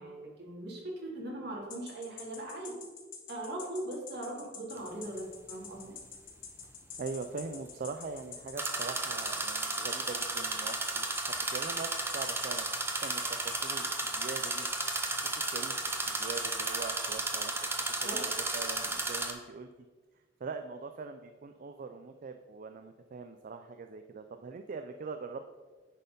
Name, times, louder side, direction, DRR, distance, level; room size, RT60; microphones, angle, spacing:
voice 1, 0.0-2.7 3.3-5.9 18.0-18.2, right 1 dB, 60° right, -3 dB, 2.5 m, -40 dB
sound 1, 1.7-16.7, left 7 dB, 50° left, 1.5 m, -46 dB
sound 2, 4.8-4.9 8.6-19.3, right 2 dB, 15° right, 0.8 m, -33 dB
voice 2, 7.0-14.7 15.0-15.7 16.1-17.5 18.0-19.7 20.4-25.6, right 4 dB, 45° right, 8 dB, 0.4 m, -42 dB
9.9 x 4.3 x 5.4 m, 1.3 s
head